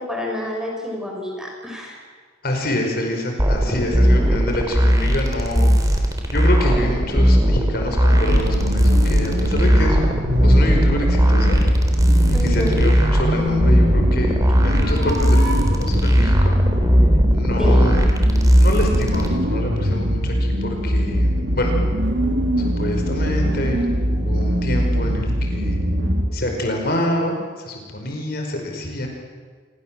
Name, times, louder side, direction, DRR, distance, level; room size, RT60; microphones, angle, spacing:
voice 1, 0.0-2.0 12.3-12.8 17.6-17.9, left 1 dB, 5° right, 0 dB, 6.3 m, -28 dB
voice 2, 2.4-5.7 6.3-10.0 10.4-11.6 12.4-14.4 14.6-16.6 17.3-18.1 18.6-21.7 22.6-25.8 26.3-27.4 27.6-29.1, left 1 dB, 55° left, 3 dB, 5.1 m, -26 dB
sound 1, 3.4-19.3, equal, 20° right, 3.9 m, -18 dB
sound 2, 8.1-26.3, equal, 65° right, 4.4 m, -21 dB
28.0 x 23.5 x 7.6 m, 1.5 s
head